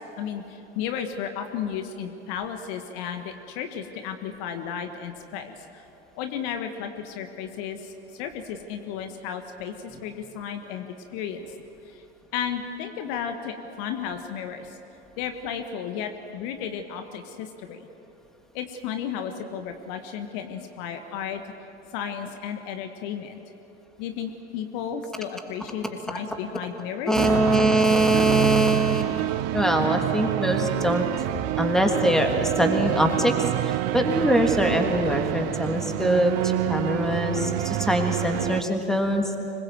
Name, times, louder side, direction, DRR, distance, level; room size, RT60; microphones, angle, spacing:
voice 1, 0.0-5.8 6.1-11.5 11.9-12.0 12.3-14.8 15.2-17.9 18.5-21.4 21.9-23.4 24.0-27.1, left 8 dB, 55° left, 6 dB, 1.7 m, -33 dB
voice 2, 27.1-29.0 29.5-31.1 31.6-33.3 33.6-39.3, right 1 dB, ahead, 3 dB, 2.9 m, -23 dB
sound 1, 27.1-38.6, right 15 dB, 50° right, 0.9 m, -27 dB
25.5 x 21.5 x 7.9 m, 2.8 s
figure-of-eight pair, 75°, 33 cm